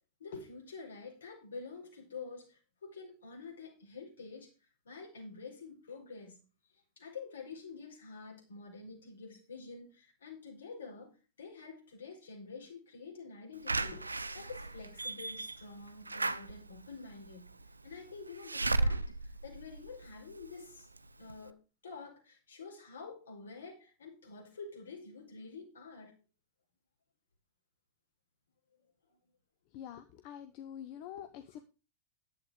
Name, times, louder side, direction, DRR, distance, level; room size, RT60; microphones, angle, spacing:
voice 1, 0.2-4.5 4.8-6.4 6.7-11.1 11.4-17.5 17.8-20.9 21.2-21.6 21.8-26.1 29.1-29.2, left 4 dB, 70° left, 1 dB, 5.1 m, -48 dB
Slam / Alarm, 13.7-20.5 21.0-21.1 21.3-21.4, right 2 dB, 80° right, 0.6 m, -35 dB
voice 2, 29.7-31.6, left 10 dB, 45° left, 9 dB, 1.0 m, -46 dB
11.5 x 8.5 x 5.1 m, 0.32 s
figure-of-eight pair, 90°, 0 cm